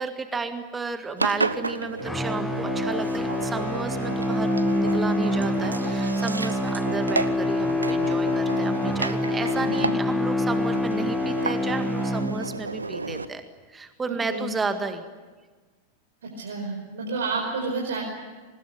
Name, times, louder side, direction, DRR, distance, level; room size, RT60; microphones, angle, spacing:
voice 1, 0.0-13.4 13.7-15.0, right 4 dB, 15° right, 8 dB, 1.8 m, -32 dB
Engine, 1.2-13.3, right 3 dB, 80° right, 1.0 m, -32 dB
sound 1, 2.0-12.8, left 1 dB, 5° left, 1.1 m, -26 dB
voice 2, 9.5-9.9 14.3-14.5 16.2-18.0, right 3 dB, 65° right, -2 dB, 5.1 m, -30 dB
24.5 x 20.5 x 10.0 m, 1.4 s
figure-of-eight pair, 90°, 0 cm